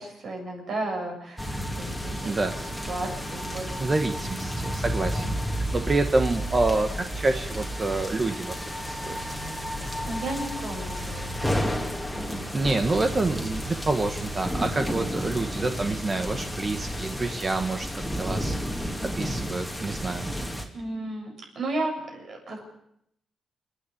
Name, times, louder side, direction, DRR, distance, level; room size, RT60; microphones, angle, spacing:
voice 1, 0.0-3.8 4.1-4.3 5.2-5.3 5.7-5.8 9.8-11.3 12.1-12.5 20.7-22.6, right 2 dB, 55° right, 1 dB, 7.7 m, -34 dB
sound 1, 1.4-20.6, equal, ahead, 2.6 m, -31 dB
voice 2, 3.8-8.5 8.8-9.1 12.5-20.3, right 2 dB, 30° right, 6 dB, 1.3 m, -27 dB
30.0 x 10.0 x 8.6 m, 0.74 s
cardioid pair, 125°, 0 cm